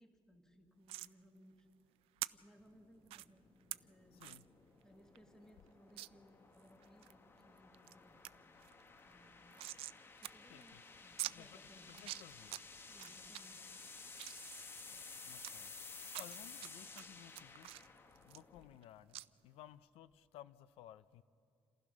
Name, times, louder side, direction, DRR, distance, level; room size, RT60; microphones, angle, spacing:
voice 1, 0.0-1.7 2.3-4.3 4.8-8.5 9.1-9.6 10.2-11.9 12.9-13.6, equal, 5° left, 1.8 m, -64 dB
sound 1, 0.9-1.1 2.2-2.3 3.1-3.3 3.7-3.8 4.2-4.4 4.8-4.9 5.2-5.3 6.0-6.1 6.6-7.1 7.6-7.9 8.2-8.3 8.6-10.0 10.2-10.3 10.6-10.7 11.2-11.3 11.9-12.6 13.0-13.4 13.9-15.5 16.1-16.7 17.0-18.8 19.1-19.3, right 16 dB, 90° right, 0.4 m, -45 dB
sound 2, 2.6-18.9, left 4 dB, 25° left, 1.1 m, -55 dB
voice 2, 4.1-4.4 10.5-10.8 11.2-11.6 11.9-12.6 14.9-15.7 16.2-17.7 18.2-21.2, left 12 dB, 90° left, 0.6 m, -58 dB
28.5 x 15.5 x 6.2 m
cardioid pair, 160°, 9 cm